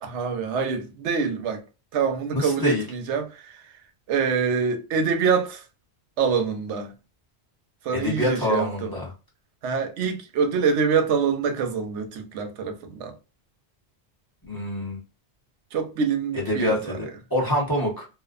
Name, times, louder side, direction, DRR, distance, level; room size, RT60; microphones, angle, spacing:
voice 1, 0.0-1.6 1.9-3.6 4.1-5.6 6.2-6.9 7.8-8.9 9.6-13.1 15.7-17.0, right 5 dB, 85° right, 0.9 m, -25 dB
voice 2, 2.3-2.8 7.9-9.1 14.5-15.0 16.3-18.1, left 1 dB, 20° left, 0.9 m, -26 dB
2.5 x 2.1 x 2.3 m
omnidirectional pair, 1.2 m